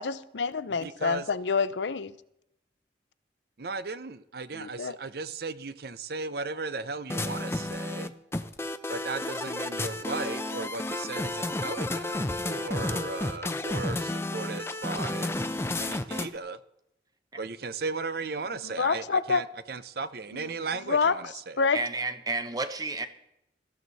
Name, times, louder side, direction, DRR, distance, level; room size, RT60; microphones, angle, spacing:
voice 1, 0.0-2.1 4.5-5.0 18.6-19.4 20.3-20.5 20.9-21.2 21.6-21.8, left 5 dB, 80° left, 0.6 m, -27 dB
voice 2, 0.8-1.3 3.6-8.1 8.9-15.3 15.8-16.6 17.4-21.7, right 4 dB, 60° right, 0.7 m, -36 dB
sound 1, 7.1-16.4, left 2 dB, 15° left, 0.6 m, -32 dB
voice 3, 21.7-23.1, right 3 dB, 20° right, 0.9 m, -31 dB
18.5 x 14.0 x 4.1 m
head